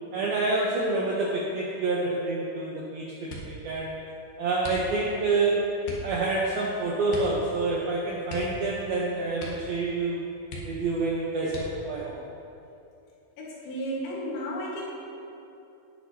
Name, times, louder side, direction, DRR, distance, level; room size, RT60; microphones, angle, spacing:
voice 1, 0.1-3.9 4.4-5.6 6.0-10.3 10.6-12.2, right 3 dB, 75° right, -5 dB, 2.2 m, -28 dB
sound 1, 3.2-3.7 4.6-5.2 5.8-6.1 7.1-7.4 7.7-7.8 8.2-9.0 9.3-9.8 10.1-10.2 10.5-11.0 11.5-12.0 12.7-13.3 13.7-14.1, equal, 65° left, 2.4 m, -40 dB
voice 2, 13.4-14.9, equal, 80° left, -4 dB, 4.3 m, -33 dB
18.0 x 7.5 x 2.9 m, 2.7 s
omnidirectional pair, 5.7 m